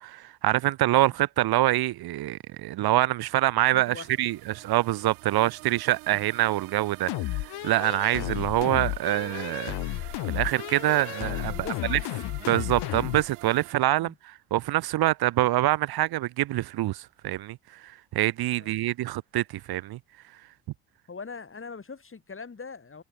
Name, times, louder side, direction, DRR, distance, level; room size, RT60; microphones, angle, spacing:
voice 1, 0.0-10.0 10.2-12.0 12.5-20.0, right 16 dB, 60° right, 1.2 m, -25 dB
voice 2, 3.7-4.1 6.1-6.3 8.3-8.5 11.5-11.9 14.0-14.2 18.6-18.8 21.1-23.0, left 5 dB, 30° left, 5.6 m, -42 dB
sound 1, 3.8-13.7, right 27 dB, 80° right, 4.0 m, -46 dB
sound 2, 7.1-13.3, left 21 dB, 65° left, 1.4 m, -33 dB
hypercardioid pair, 55°, 42 cm